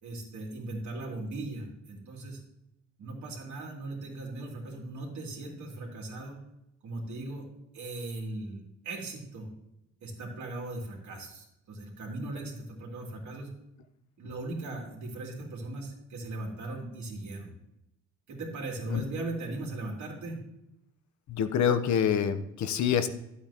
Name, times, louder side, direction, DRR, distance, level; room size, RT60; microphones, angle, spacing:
voice 1, 0.0-2.4 3.0-6.4 6.8-7.5 7.7-9.5 10.0-13.5 14.2-17.5 18.3-20.4, right 2 dB, 70° right, -1 dB, 2.9 m, -38 dB
voice 2, 21.3-23.1, left 8 dB, 70° left, 10 dB, 0.9 m, -26 dB
11.5 x 8.4 x 2.9 m, 0.85 s
cardioid pair, 90°, 30 cm